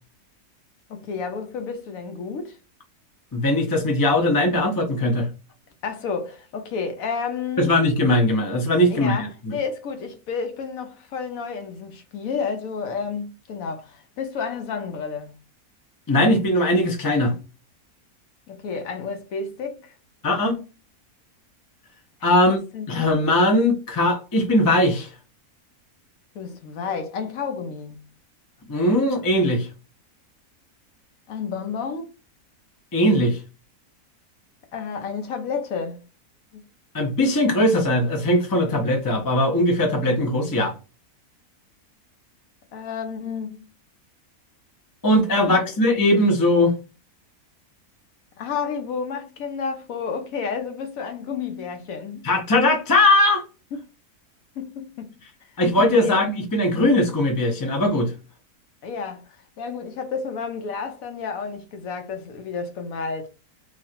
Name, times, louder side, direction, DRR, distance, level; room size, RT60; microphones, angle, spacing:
voice 1, 0.9-2.6 5.8-7.7 8.9-15.3 18.5-19.9 22.4-22.5 22.7-22.9 26.3-28.0 31.3-32.1 34.7-36.0 36.5-36.6 42.7-43.6 45.4-45.7 48.4-52.3 53.7-53.8 54.6-55.2 55.8-56.2 58.8-59.2 59.6-63.3, left 5 dB, 70° left, 1.0 m, -31 dB
voice 2, 3.3-5.3 7.6-9.6 16.1-17.3 20.2-20.6 22.2-22.6 22.9-25.1 28.7-29.7 32.9-33.4 36.9-40.7 45.0-46.7 52.2-53.5 55.6-58.1, left 1 dB, 30° left, 0.4 m, -20 dB
3.0 x 2.4 x 4.2 m
omnidirectional pair, 1.6 m